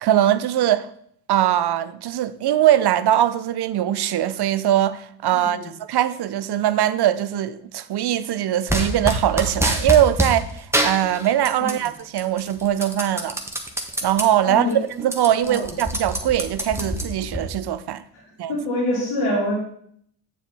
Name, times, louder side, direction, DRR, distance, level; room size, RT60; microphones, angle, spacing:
voice 1, 0.0-0.9 1.3-13.4 14.0-14.6 15.0-18.0 18.4-18.5, right 11 dB, 55° right, 0.7 m, -21 dB
sound 1, 8.7-10.4 10.7-11.9 12.2-14.3 14.7-14.8 15.0-17.4, right 1 dB, 5° right, 1.5 m, -25 dB
voice 2, 14.4-14.8 15.4-15.7 18.1-18.2 18.5-19.6, left 1 dB, 80° left, 3.7 m, -25 dB
7.4 x 7.1 x 4.2 m
supercardioid pair, 60°, 49 cm